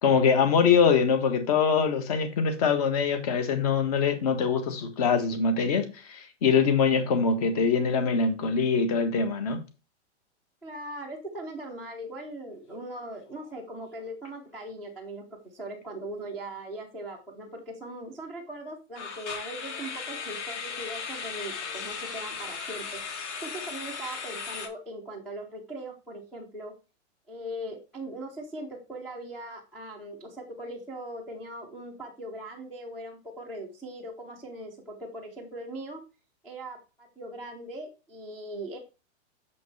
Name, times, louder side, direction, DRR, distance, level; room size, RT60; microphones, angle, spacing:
voice 1, 0.0-9.6, left 6 dB, 35° left, 1.5 m, -23 dB
voice 2, 10.6-15.2 15.5-22.8 23.4-26.7 27.3-36.0 36.4-38.8, right 1 dB, ahead, 0.5 m, -40 dB
sound 1, 12.8-13.0 13.3-13.5 14.0-14.1 19.0-24.7, left 5 dB, 75° left, 2.6 m, -37 dB
6.9 x 6.3 x 3.2 m
supercardioid pair, 180°, 35 cm